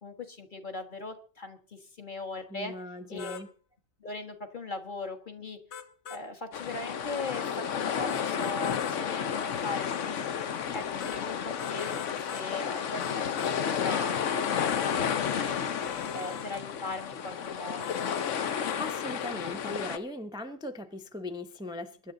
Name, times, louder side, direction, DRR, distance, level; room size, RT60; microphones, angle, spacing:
voice 1, 0.0-2.7 3.1-3.4 4.0-5.6 6.1-10.2 10.7-15.7 16.1-17.9, left 3 dB, 45° left, 4 dB, 1.6 m, -39 dB
voice 2, 2.5-3.5 18.5-22.1, left 1 dB, 5° right, 7 dB, 0.7 m, -39 dB
sound 1, 3.2-3.5 5.7-6.2 8.1-9.0 11.0-11.2 11.6-12.5 13.0-13.6 15.8-16.5 17.8-18.4 18.6-18.8, left 7 dB, 65° left, 1.4 m, -42 dB
sound 2, 6.5-20.0, left 7 dB, 85° left, 1.2 m, -31 dB
23.5 x 10.5 x 3.8 m, 0.42 s
omnidirectional pair, 1.2 m